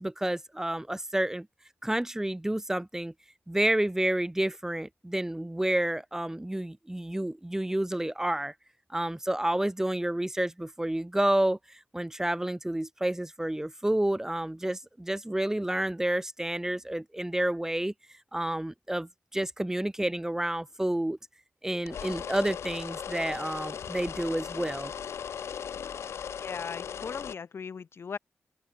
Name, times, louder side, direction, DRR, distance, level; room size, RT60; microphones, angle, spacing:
voice 1, 0.0-1.5 1.8-3.1 3.5-8.5 8.9-17.9 18.3-21.2 21.6-24.9, right 1 dB, 10° right, 1.5 m, -30 dB
sound 1, 21.9-27.3, left 8 dB, 85° left, 2.2 m, -38 dB
voice 2, 26.4-28.2, left 6 dB, 65° left, 3.6 m, -38 dB
open air
cardioid pair, 85°, 4 cm